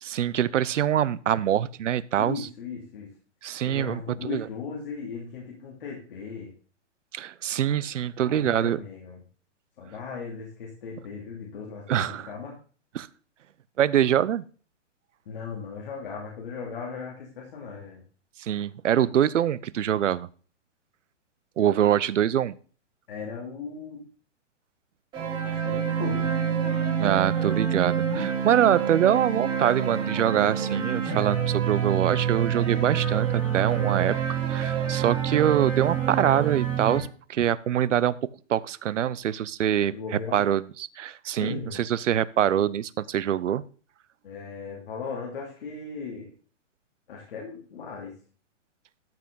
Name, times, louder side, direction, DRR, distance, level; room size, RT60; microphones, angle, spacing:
voice 1, 0.0-2.5 3.4-4.5 7.1-8.8 11.9-12.3 12.9-13.1 13.8-14.4 18.4-20.3 21.6-22.5 27.0-33.3 33.5-38.1 38.5-39.9 40.3-43.6, right 10 dB, 75° right, 20 dB, 0.8 m, -24 dB
voice 2, 2.2-3.1 3.6-6.5 8.2-9.2 9.8-12.5 15.3-18.0 23.1-24.0 25.4-26.3 39.9-40.4 41.4-41.8 44.2-46.3 47.1-48.1, left 5 dB, 45° left, -2 dB, 3.0 m, -37 dB
sound 1, 25.1-37.0, right 8 dB, 10° right, 2.9 m, -27 dB
13.5 x 6.1 x 3.9 m, 0.40 s
hypercardioid pair, 170°, 37 cm